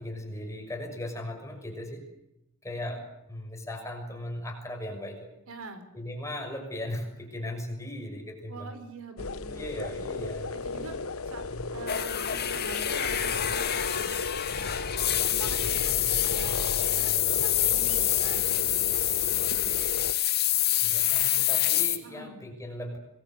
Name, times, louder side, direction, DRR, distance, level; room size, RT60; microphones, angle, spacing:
voice 1, 0.0-2.0 2.6-5.3 5.9-8.7 9.5-10.9 11.5-11.7 20.8-23.0, left 1 dB, 15° left, 3 dB, 6.2 m, -38 dB
voice 2, 5.5-5.8 8.5-9.8 10.1-10.2 10.5-11.0 11.3-11.4 11.7-14.2 14.7-20.0 22.0-22.4, right 2 dB, 70° right, 9 dB, 4.3 m, -44 dB
sound 1, 9.2-20.1, left 3 dB, 70° left, 1.2 m, -35 dB
sound 2, 11.9-22.0, left 13 dB, 45° left, 2.2 m, -27 dB
26.0 x 20.5 x 8.1 m, 0.89 s
head